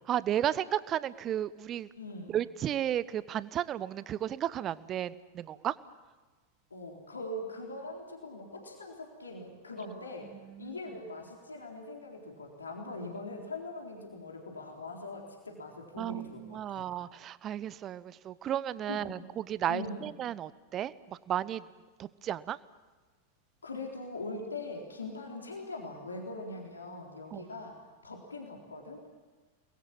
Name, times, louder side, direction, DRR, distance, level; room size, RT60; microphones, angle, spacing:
voice 1, 0.1-1.9 2.3-5.7 10.4-10.8 16.0-21.6 22.0-22.6 27.3-27.4, right 11 dB, 30° right, 18 dB, 0.9 m, -33 dB
voice 2, 2.0-2.4 6.7-10.3 10.6-16.8 18.9-19.2 19.7-20.1 23.6-27.8 28.0-29.2, left 2 dB, 75° left, 0 dB, 4.0 m, -42 dB
29.5 x 21.0 x 7.5 m, 1.3 s
figure-of-eight pair, 90°, 0 cm